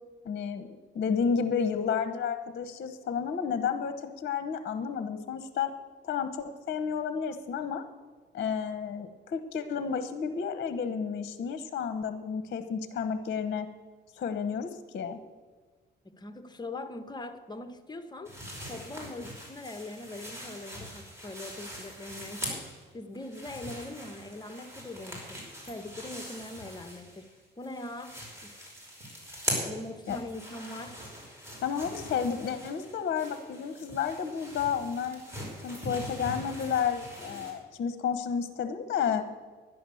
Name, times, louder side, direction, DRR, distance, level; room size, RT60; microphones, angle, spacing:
voice 1, 0.2-0.7 0.9-5.7 6.0-7.8 8.3-13.7 14.1-15.2 30.1-30.2 31.6-35.2 35.5-39.2, left 7 dB, 55° left, 10 dB, 1.0 m, -31 dB
voice 2, 16.0-18.4 18.6-22.7 22.9-25.4 25.7-27.3 27.6-28.7 29.6-31.0, left 2 dB, 20° left, 9 dB, 1.3 m, -42 dB
sound 1, 18.2-22.8 23.1-27.3 27.6-37.5, equal, 15° right, 5.5 m, -41 dB
11.5 x 10.5 x 7.0 m, 1.4 s
cardioid pair, 90°, 20 cm